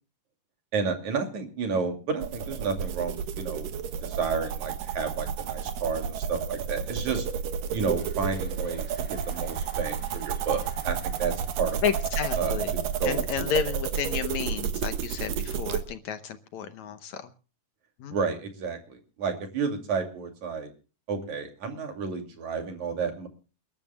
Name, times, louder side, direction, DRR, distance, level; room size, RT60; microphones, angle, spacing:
voice 1, 0.7-3.7 4.0-7.3 7.7-11.9 12.4-13.5 18.1-20.7 21.1-23.3, right 5 dB, 60° right, 5 dB, 3.8 m, -31 dB
sound 1, 2.2-15.8, right 8 dB, 85° right, 2.9 m, -31 dB
sound 2, 7.2-13.8 14.3-14.4, left 1 dB, 5° left, 5.3 m, -54 dB
voice 2, 11.8-12.7 13.0-17.2 18.0-18.2, left 8 dB, 70° left, 9 dB, 2.1 m, -31 dB
29.5 x 12.5 x 2.3 m, 0.35 s
omnidirectional pair, 3.8 m